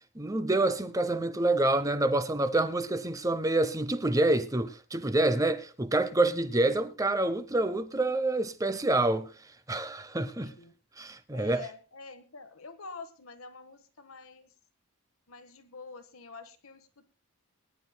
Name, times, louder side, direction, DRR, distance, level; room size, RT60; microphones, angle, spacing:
voice 1, 0.1-9.3 9.7-10.5 11.0-11.7, right 2 dB, 15° right, 0.8 m, -27 dB
voice 2, 10.4-10.7 11.3-14.5 15.3-17.0, left 4 dB, 85° left, 1.5 m, -47 dB
23.0 x 10.5 x 2.3 m
head